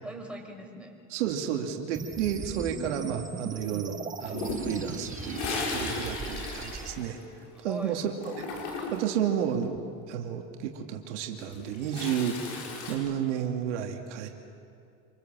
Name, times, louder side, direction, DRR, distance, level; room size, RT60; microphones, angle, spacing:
voice 1, 0.0-1.0 2.4-3.3 3.7-4.2 7.5-8.0, right 1 dB, 5° right, 0 dB, 5.3 m, -41 dB
voice 2, 1.1-7.2 7.6-8.2 8.9-14.3, right 9 dB, 85° right, 3 dB, 2.4 m, -32 dB
sound 1, 1.9-6.9, right 5 dB, 20° right, 1.5 m, -39 dB
Toilet flush, 4.2-7.7 8.0-9.2 11.2-12.9, left 3 dB, 85° left, 6.2 m, -36 dB
27.0 x 22.5 x 7.6 m, 2.5 s
supercardioid pair, 105°, 35 cm